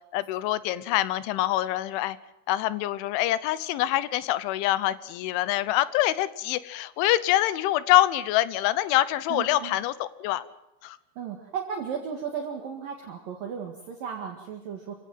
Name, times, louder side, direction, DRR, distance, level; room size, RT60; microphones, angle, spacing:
voice 1, 0.1-2.2 2.5-10.5 10.8-11.0, left 14 dB, 80° left, 17 dB, 3.3 m, -25 dB
voice 2, 9.3-9.8 11.2-14.9, right 7 dB, 55° right, 2 dB, 3.1 m, -35 dB
27.5 x 17.0 x 7.7 m, 0.92 s
omnidirectional pair, 5.6 m